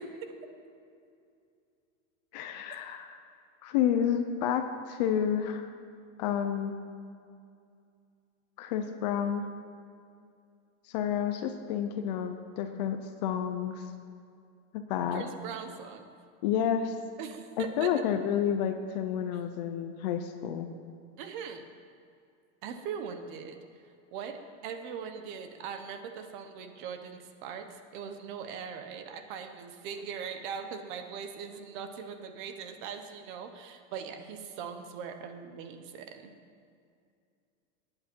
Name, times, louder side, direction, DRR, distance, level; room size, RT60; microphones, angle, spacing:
voice 1, 2.3-3.2 3.6-5.7 6.2-6.8 8.6-9.5 10.9-13.9 14.7-15.2 16.4-17.0 17.6-20.7, left 9 dB, 35° left, 8 dB, 0.5 m, -30 dB
voice 2, 15.1-16.0 17.2-17.9 21.2-21.7 22.6-23.6 24.1-36.3, right 7 dB, 40° right, 7 dB, 0.9 m, -40 dB
18.5 x 8.8 x 4.5 m, 2.4 s
supercardioid pair, 180°, 39 cm